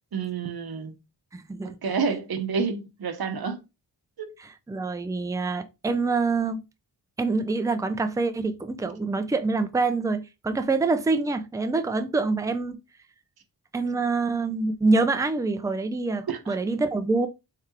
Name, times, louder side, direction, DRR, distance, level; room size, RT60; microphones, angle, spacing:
voice 1, 0.1-0.9 1.6-3.6 4.2-4.3 16.3-16.6, right 5 dB, 55° right, 0.8 m, -29 dB
voice 2, 1.3-1.8 4.7-6.6 7.2-12.8 13.7-17.3, right 3 dB, 10° right, 0.4 m, -25 dB
3.6 x 3.3 x 3.0 m
cardioid pair, 60°, 44 cm